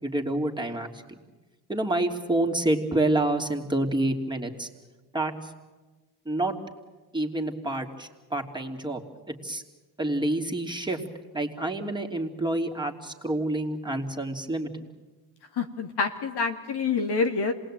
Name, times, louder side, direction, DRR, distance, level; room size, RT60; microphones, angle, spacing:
voice 1, 0.0-0.9 1.7-4.7 5.1-5.3 6.2-6.5 7.1-9.6 10.0-11.0 11.3-14.8, right 1 dB, 10° right, 2 dB, 3.1 m, -28 dB
voice 2, 15.6-17.5, left 4 dB, 60° left, 5 dB, 2.4 m, -27 dB
27.0 x 20.0 x 8.9 m, 1.2 s
supercardioid pair, 65°, 45 cm